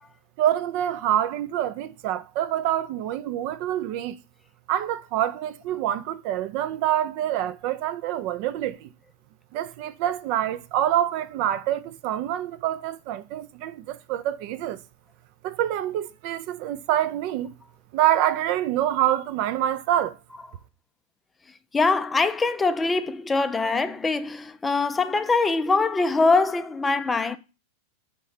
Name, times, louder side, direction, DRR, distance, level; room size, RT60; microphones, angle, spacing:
voice 1, 0.4-4.2 4.7-8.9 9.5-14.8 15.4-17.5 17.9-20.2, right 11 dB, 45° right, 0.4 m, -26 dB
voice 2, 21.7-27.4, left 3 dB, 15° left, 0.4 m, -23 dB
5.2 x 3.6 x 5.5 m
figure-of-eight pair, 90°, 0 cm